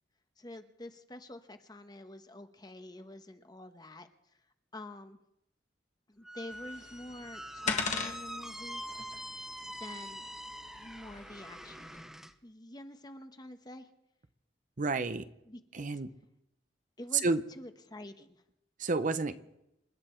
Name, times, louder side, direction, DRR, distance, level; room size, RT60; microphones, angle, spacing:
voice 1, 0.4-4.1 4.7-5.2 6.1-8.8 9.6-10.3 10.8-11.9 12.4-13.9 15.4-15.9 17.0-18.4, left 1 dB, 25° left, 8 dB, 1.0 m, -47 dB
Squeak, 6.2-12.3, equal, ahead, 0.7 m, -44 dB
sound 1, 6.5-12.0, left 5 dB, 45° left, 1.7 m, -41 dB
voice 2, 14.8-15.2 15.7-16.1 17.2-17.4 18.8-19.4, right 2 dB, 45° right, 11 dB, 0.7 m, -30 dB
28.0 x 10.5 x 4.5 m, 0.86 s
head